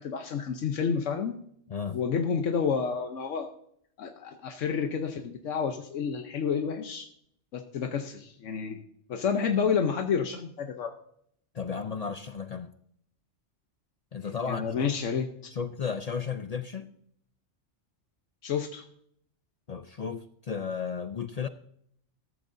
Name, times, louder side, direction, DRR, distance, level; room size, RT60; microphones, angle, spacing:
voice 1, 0.0-1.4 1.9-3.5 4.0-7.1 7.5-8.8 9.1-10.9 14.5-15.3 18.4-18.8, left 6 dB, 85° left, 1.2 m, -29 dB
voice 2, 1.7-2.0 11.5-12.7 14.1-14.9 15.5-16.9 19.7-21.5, left 6 dB, 50° left, 0.5 m, -34 dB
14.5 x 13.5 x 2.6 m
omnidirectional pair, 1.2 m